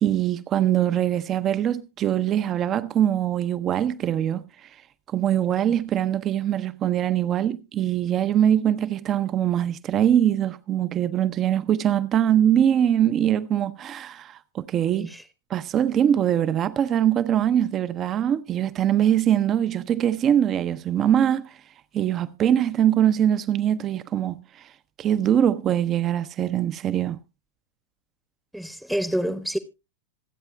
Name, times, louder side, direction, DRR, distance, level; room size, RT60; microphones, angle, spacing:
voice 1, 0.0-4.4 5.1-15.1 15.5-21.6 21.9-24.7 25.0-27.2, right 10 dB, 30° right, 0.6 m, -22 dB
voice 2, 14.9-15.2 28.5-29.6, equal, ahead, 0.8 m, -28 dB
26.5 x 8.9 x 2.2 m
figure-of-eight pair, 90°, 0 cm